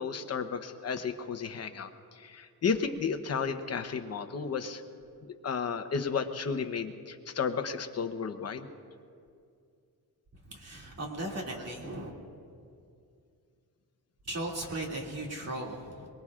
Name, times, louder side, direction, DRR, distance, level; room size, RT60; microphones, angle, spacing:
voice 1, 0.0-4.8 5.2-8.7, left 5 dB, 45° left, 7 dB, 0.9 m, -33 dB
voice 2, 10.3-12.1 14.2-16.1, right 1 dB, 45° right, -1 dB, 2.5 m, -37 dB
23.5 x 22.5 x 2.5 m, 2.4 s
wide cardioid pair, 155°, 36 cm